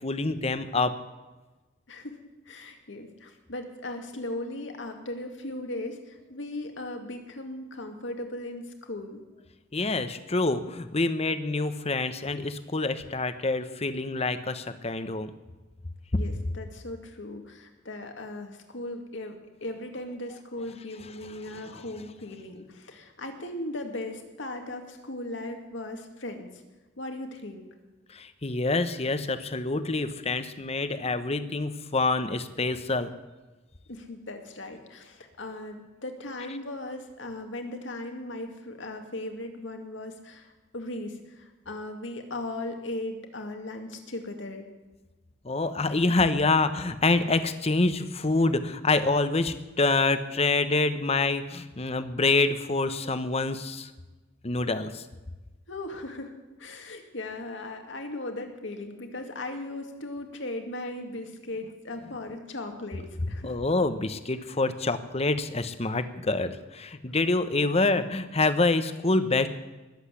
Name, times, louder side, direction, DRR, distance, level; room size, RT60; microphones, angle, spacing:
voice 1, 0.0-0.9 9.7-15.3 21.5-21.6 28.1-33.1 45.4-53.9 54.4-55.0 63.4-69.5, left 3 dB, 35° left, 11 dB, 0.9 m, -26 dB
voice 2, 1.9-2.2 2.5-9.2 16.1-19.4 19.6-26.6 27.0-27.7 33.9-44.7 55.7-56.3 56.6-63.6, left 2 dB, 75° left, 4 dB, 2.3 m, -38 dB
20.0 x 8.1 x 8.2 m, 1.2 s
head